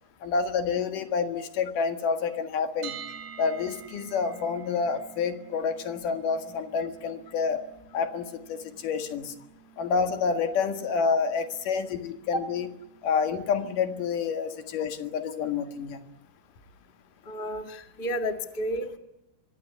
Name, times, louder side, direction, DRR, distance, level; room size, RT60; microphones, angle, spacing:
voice 1, 0.2-3.0 3.4-7.7 7.9-9.3 9.8-12.7 13.0-16.0, left 5 dB, 70° left, 7 dB, 3.2 m, -28 dB
sound 1, 2.8-14.7, right 8 dB, 80° right, 4.2 m, -49 dB
voice 2, 17.2-19.0, equal, 20° left, 5 dB, 1.5 m, -31 dB
25.5 x 23.0 x 9.6 m, 0.87 s
omnidirectional pair, 3.9 m